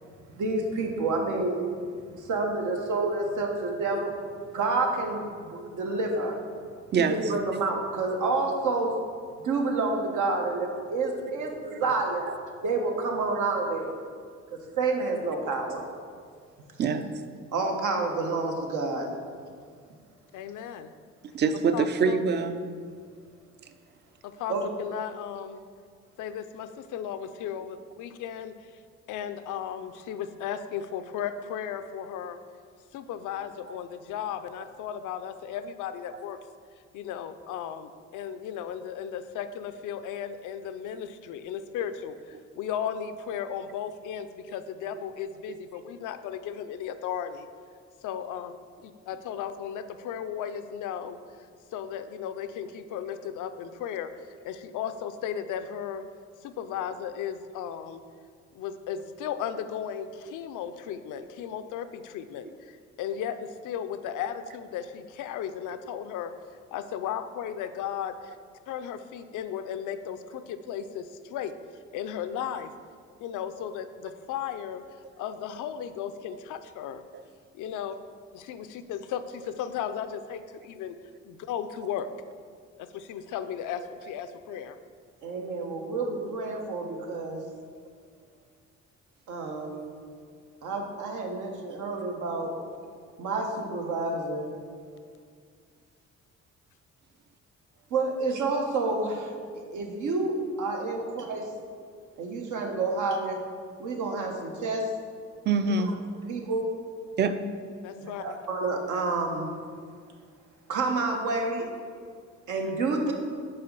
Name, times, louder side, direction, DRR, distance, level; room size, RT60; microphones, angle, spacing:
voice 1, 0.4-1.6 2.1-4.1 4.5-6.3 6.9-9.0 9.4-12.3 12.6-13.9 14.5-15.8 17.5-19.1 24.5-24.6 85.2-87.4 89.3-89.9 90.6-92.5 93.2-94.5 97.9-101.4 102.2-103.4 103.8-104.9 105.6-105.7 106.3-106.7 108.0-109.5 110.7-111.7 112.5-113.1, right 3 dB, 80° right, 2 dB, 1.0 m, -29 dB
voice 2, 16.8-17.1 21.3-22.6 45.5-45.6 77.1-77.2 105.5-106.0 107.2-107.4, right 5 dB, 35° right, 10 dB, 0.4 m, -25 dB
voice 3, 20.3-20.9 21.7-22.2 24.2-25.6 26.2-28.8 29.1-32.4 32.9-36.4 36.9-47.5 48.0-48.5 48.8-54.1 54.4-56.0 56.4-58.0 58.5-66.3 66.7-68.4 68.7-71.5 71.9-72.7 73.2-74.8 75.2-77.0 77.5-78.0 78.3-81.0 81.2-82.1 82.8-84.8 107.8-108.2, left 9 dB, 80° left, 10 dB, 0.5 m, -35 dB
5.5 x 4.0 x 5.3 m, 2.1 s
cardioid pair, 90°, 30 cm